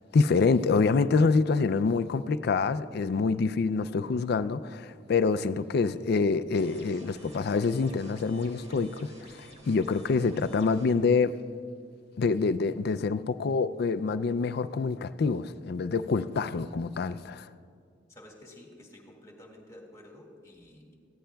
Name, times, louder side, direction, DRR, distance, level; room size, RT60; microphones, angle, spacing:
voice 1, 0.1-9.1 9.7-11.3 12.2-17.4, left 4 dB, 60° left, 0.4 m, -26 dB
sound 1, 6.5-10.9, right 1 dB, 35° right, 1.5 m, -52 dB
voice 2, 18.1-20.9, left 1 dB, 15° left, 1.9 m, -51 dB
20.0 x 15.0 x 2.3 m
head